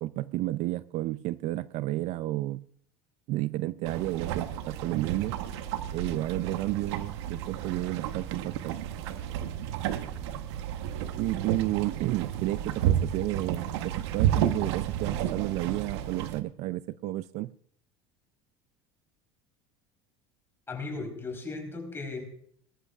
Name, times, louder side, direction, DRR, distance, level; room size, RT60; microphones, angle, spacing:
voice 1, 0.0-2.6 3.3-5.4 5.9-8.8 11.2-17.5, right 16 dB, 55° right, 0.4 m, -31 dB
sound 1, 3.8-16.4, right 10 dB, 85° right, 1.0 m, -32 dB
voice 2, 20.7-22.2, left 3 dB, 15° left, 4.1 m, -36 dB
19.5 x 13.5 x 2.4 m
supercardioid pair, 120°, 14 cm